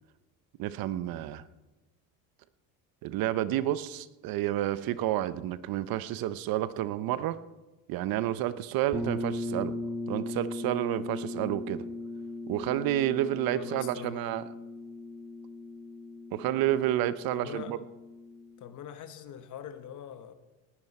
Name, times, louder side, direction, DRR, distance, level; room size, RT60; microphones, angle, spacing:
voice 1, 0.6-1.4 3.0-7.4 7.9-9.8 10.1-11.8 12.5-14.4 16.3-17.8, right 13 dB, 60° right, 15 dB, 0.8 m, -30 dB
sound 1, 8.9-18.6, left 2 dB, 5° right, 1.8 m, -38 dB
voice 2, 13.5-14.4 17.3-17.8 18.6-20.3, left 9 dB, 50° left, 9 dB, 1.4 m, -43 dB
19.0 x 11.0 x 4.3 m, 1.1 s
supercardioid pair, 110°, 40 cm